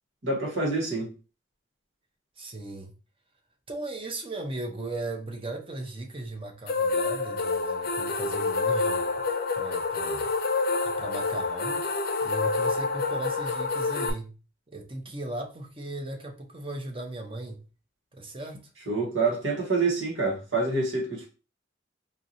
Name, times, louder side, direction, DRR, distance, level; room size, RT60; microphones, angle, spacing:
voice 1, 0.2-1.1 18.9-21.3, right 3 dB, 80° right, 1.6 m, -27 dB
voice 2, 2.4-2.9 3.7-9.2 9.5-10.3 10.8-11.9 12.2-14.3 14.7-17.6 18.1-18.7, right 2 dB, 30° right, 0.8 m, -37 dB
sound 1, 6.7-14.1, left 3 dB, 55° left, 0.6 m, -27 dB
4.6 x 2.7 x 2.7 m
head